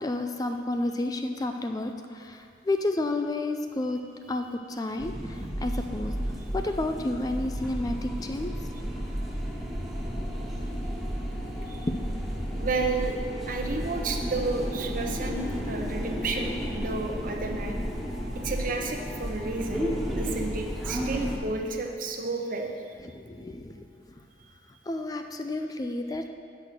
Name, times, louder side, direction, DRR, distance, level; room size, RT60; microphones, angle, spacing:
voice 1, 0.0-4.0 4.3-6.1 6.5-8.5 9.2-9.3 11.6-12.0 23.0-23.9 24.9-26.3, left 2 dB, 20° left, 6 dB, 0.4 m, -31 dB
sound 1, 5.0-21.4, equal, ahead, 1.1 m, -32 dB
voice 2, 12.5-13.2 13.5-17.8 18.4-19.9 20.2-22.9, right 3 dB, 50° right, 3 dB, 0.8 m, -31 dB
7.8 x 6.3 x 5.8 m, 2.3 s
head